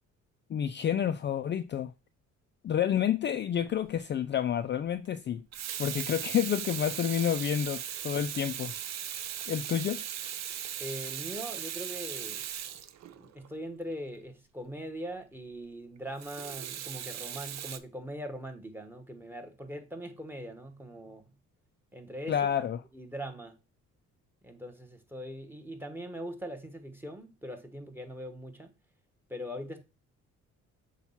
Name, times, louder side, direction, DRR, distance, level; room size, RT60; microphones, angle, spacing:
voice 1, 0.5-1.9 2.6-5.4 5.8-8.7 9.5-10.0 22.3-22.8, left 9 dB, 40° left, 0.4 m, -29 dB
Water tap faucet / Sink (filling or washing), 3.7-4.0 5.3-13.5 16.2-17.8, right 10 dB, 60° right, 0.6 m, -38 dB
voice 2, 10.8-12.5 13.0-21.3 21.9-22.4 22.9-23.6 24.4-28.7 29.3-29.8, equal, 5° right, 1.1 m, -41 dB
7.1 x 2.4 x 5.6 m
cardioid pair, 90°, 30 cm